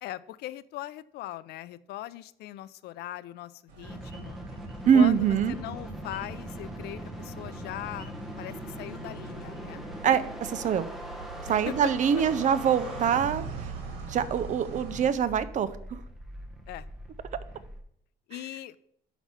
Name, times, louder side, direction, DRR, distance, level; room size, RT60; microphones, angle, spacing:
voice 1, 0.0-4.4 4.9-8.1 8.4-9.8 11.7-11.8 16.7-16.9 18.3-18.8, left 15 dB, 75° left, 16 dB, 0.4 m, -40 dB
sound 1, 3.7-15.1, right 5 dB, 85° right, 1.7 m, -43 dB
sound 2, 3.8-17.8, equal, ahead, 1.3 m, -42 dB
voice 2, 4.8-5.5 10.0-10.9 11.5-13.4 14.1-16.0, right 7 dB, 45° right, 13 dB, 0.6 m, -24 dB
6.0 x 5.5 x 5.9 m, 0.69 s
cardioid pair, 110°, 17 cm